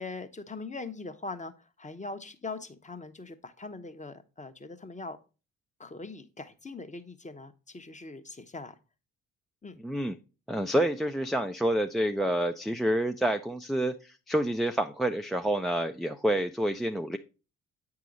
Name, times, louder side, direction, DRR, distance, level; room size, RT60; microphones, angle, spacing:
voice 1, 0.0-5.2 5.8-8.7 9.6-9.8, left 3 dB, 20° left, 0.9 m, -41 dB
voice 2, 9.8-10.1 10.5-17.2, right 1 dB, ahead, 0.4 m, -28 dB
8.3 x 4.8 x 3.9 m
hypercardioid pair, 40°, 39 cm